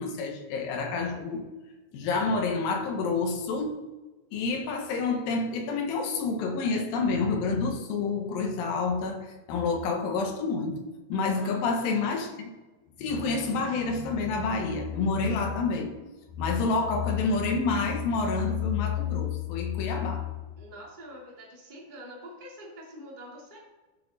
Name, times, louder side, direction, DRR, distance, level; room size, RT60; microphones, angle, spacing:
voice 1, 0.0-1.4 1.9-3.8 4.3-10.8 11.1-12.5 13.0-15.9 16.4-20.3, left 4 dB, 70° left, 2.5 m, -28 dB
voice 2, 11.3-11.7 20.6-23.6, equal, 35° right, 0.7 m, -45 dB
13.5 x 6.6 x 4.1 m
omnidirectional pair, 5.2 m